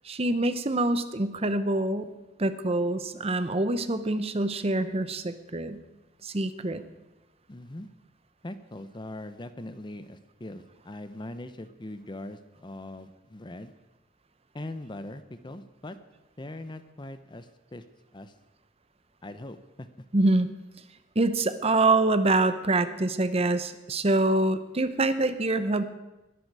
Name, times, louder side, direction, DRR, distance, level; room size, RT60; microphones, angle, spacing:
voice 1, 0.0-2.1 2.4-5.8 6.2-6.8 20.1-20.5 21.2-25.8, right 2 dB, 35° right, 11 dB, 0.8 m, -25 dB
voice 2, 7.5-7.9 8.4-13.7 14.5-16.0 16.4-17.8 18.1-18.3 19.2-19.9, left 1 dB, 25° left, 11 dB, 0.8 m, -41 dB
21.5 x 11.0 x 4.8 m, 1.0 s
head